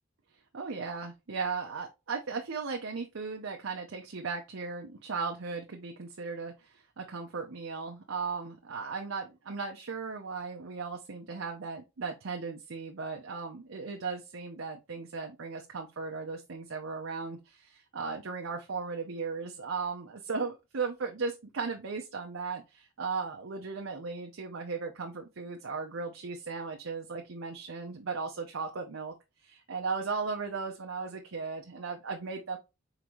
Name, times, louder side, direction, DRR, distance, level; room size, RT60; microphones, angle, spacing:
voice 1, 0.5-29.1 29.4-32.6, right 4 dB, 90° right, 2 dB, 0.7 m, -36 dB
4.4 x 3.8 x 3.0 m, 0.25 s
head